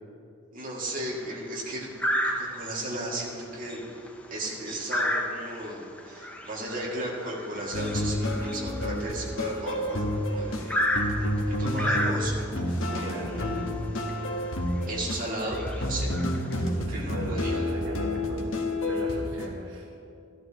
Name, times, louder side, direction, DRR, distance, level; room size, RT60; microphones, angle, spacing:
voice 1, 0.5-1.9 2.2-3.8 4.3-10.8 11.1-12.5 12.9-13.2 14.8-16.2 16.6-17.6, right 1 dB, 45° right, -4 dB, 2.3 m, -35 dB
sound 1, 0.9-1.3 2.0-2.8 3.2-3.4 3.7-10.0 10.7-12.6 13.6-13.7 14.1-14.2 14.8-15.0 15.4-16.6, equal, 5° left, 0.7 m, -31 dB
sound 2, 7.7-19.5, left 1 dB, 85° left, 1.3 m, -29 dB
voice 2, 13.0-13.6 16.8-19.9, right 1 dB, 80° right, -1 dB, 1.0 m, -39 dB
14.5 x 11.5 x 3.0 m, 2.5 s
head